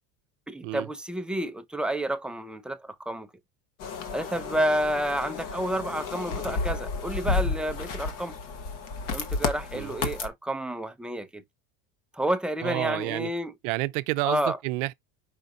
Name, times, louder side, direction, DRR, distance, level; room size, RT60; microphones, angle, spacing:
voice 1, 0.5-3.3 4.1-8.4 9.1-11.4 12.1-13.5 14.2-14.6, right 1 dB, 5° right, 0.4 m, -30 dB
sound 1, 3.8-10.3, left 4 dB, 65° left, 1.2 m, -32 dB
voice 2, 12.6-13.3 13.6-14.9, right 20 dB, 90° right, 0.5 m, -29 dB
5.1 x 3.9 x 2.5 m
supercardioid pair, 125°, 35 cm